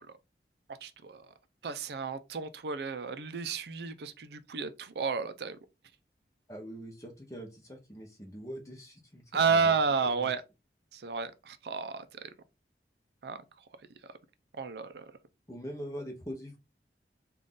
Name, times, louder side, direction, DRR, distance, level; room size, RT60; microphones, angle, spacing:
voice 1, 0.8-1.2 1.6-5.6 9.3-10.4 10.9-12.1 13.2-13.4 14.6-15.1, right 5 dB, 70° right, 0.4 m, -31 dB
voice 2, 6.5-9.7 10.0-10.3 15.5-16.6, equal, 20° left, 0.8 m, -43 dB
3.8 x 2.4 x 3.6 m
head